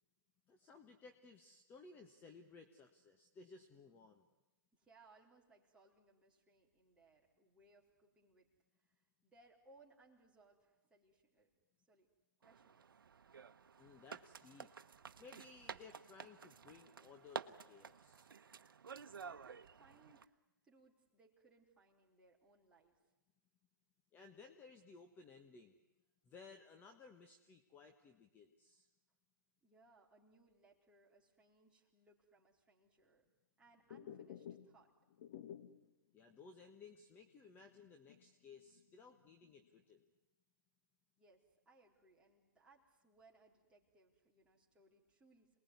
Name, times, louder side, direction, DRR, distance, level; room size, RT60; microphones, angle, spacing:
voice 1, 0.5-4.3 13.8-14.7 15.2-18.3 24.1-25.8 26.2-28.9 36.1-40.1, left 4 dB, 15° left, 6 dB, 1.4 m, -59 dB
voice 2, 4.7-8.5 8.7-11.5 11.8-12.1 12.4-12.9 19.2-22.9 29.6-33.2 33.6-34.9 41.1-45.5, right 3 dB, 10° right, -3 dB, 4.0 m, -69 dB
sound 1, 12.4-20.2, right 6 dB, 80° right, 1.0 m, -52 dB
sound 2, 33.8-35.9 36.3-36.4 36.8-36.9 37.4-38.8 39.2-39.8, left 9 dB, 50° left, 1.6 m, -53 dB
28.0 x 20.0 x 9.6 m, 1.0 s
hypercardioid pair, 145°, 11 cm